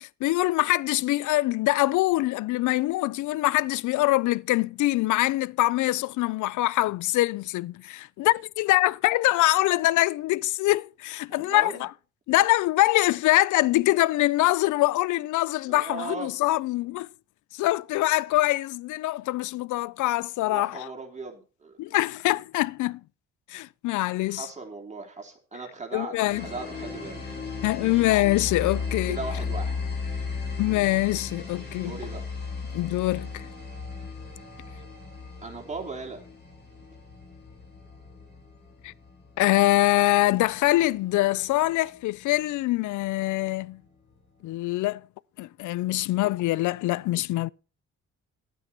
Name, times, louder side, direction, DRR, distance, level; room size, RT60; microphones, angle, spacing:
voice 1, 0.0-11.9 12.3-17.1 17.5-20.9 21.8-23.0 23.5-24.5 25.9-26.4 27.6-29.2 30.6-32.0 32.7-33.5 38.8-38.9 39.4-43.8 44.4-45.0 45.4-47.5, left 17 dB, 75° left, 0.5 m, -24 dB
voice 2, 11.3-11.8 15.7-16.3 20.4-21.7 24.3-28.1 29.1-29.8 31.8-32.2 35.4-36.2, right 3 dB, 25° right, 3.4 m, -38 dB
sound 1, 26.3-41.7, left 4 dB, 35° left, 7.5 m, -36 dB
12.0 x 9.2 x 4.4 m
cardioid pair, 90°, 30 cm